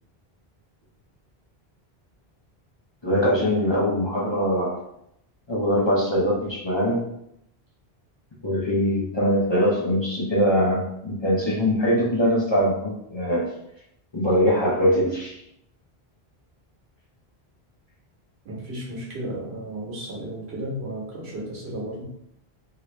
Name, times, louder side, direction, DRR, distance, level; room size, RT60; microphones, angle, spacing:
voice 1, 3.0-4.8 5.5-7.0 8.4-13.5 14.1-15.3, equal, 30° left, -6 dB, 0.6 m, -22 dB
voice 2, 18.4-22.0, right 1 dB, 85° right, -3 dB, 1.3 m, -33 dB
2.9 x 2.6 x 3.1 m, 0.77 s
omnidirectional pair, 1.1 m